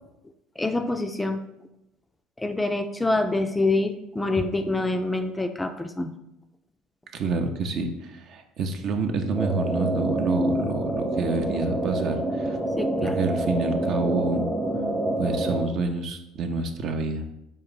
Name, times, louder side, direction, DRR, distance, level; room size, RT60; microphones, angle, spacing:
voice 1, 0.6-1.4 2.4-6.1 12.8-13.2, left 2 dB, 15° left, 7 dB, 0.3 m, -26 dB
voice 2, 7.1-12.6 13.0-14.5 15.2-17.2, right 3 dB, 50° right, 5 dB, 0.5 m, -28 dB
sound 1, 9.3-15.6, right 1 dB, 10° right, 0.7 m, -27 dB
4.4 x 2.5 x 3.8 m, 0.86 s
hypercardioid pair, 65°, 0 cm